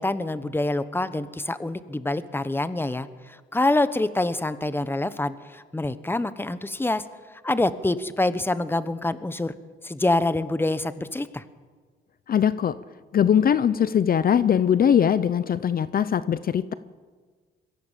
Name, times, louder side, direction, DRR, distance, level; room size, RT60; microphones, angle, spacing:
voice 1, 0.0-3.1 3.5-7.0 7.4-9.5 9.8-11.4, left 2 dB, 10° left, 13 dB, 1.1 m, -26 dB
voice 2, 12.3-12.8 13.1-16.7, left 8 dB, 50° left, 15 dB, 0.7 m, -21 dB
22.5 x 16.0 x 7.5 m, 1.5 s
cardioid pair, 90°, 20 cm